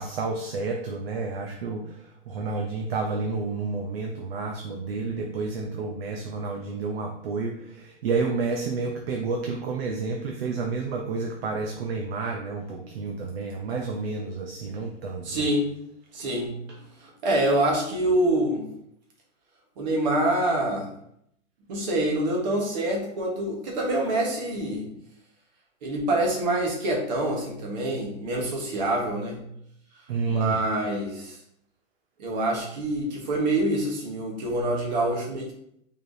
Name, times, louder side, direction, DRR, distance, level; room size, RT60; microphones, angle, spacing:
voice 1, 0.0-1.8 2.3-15.5 30.1-30.6, right 4 dB, 50° right, 2 dB, 0.6 m, -30 dB
voice 2, 15.2-15.7 16.1-18.6 19.8-20.9 21.7-24.9 25.8-29.4 30.3-31.4 32.2-35.5, right 1 dB, 35° right, -1 dB, 1.1 m, -26 dB
4.3 x 3.4 x 2.6 m, 0.72 s
hypercardioid pair, 170°, 38 cm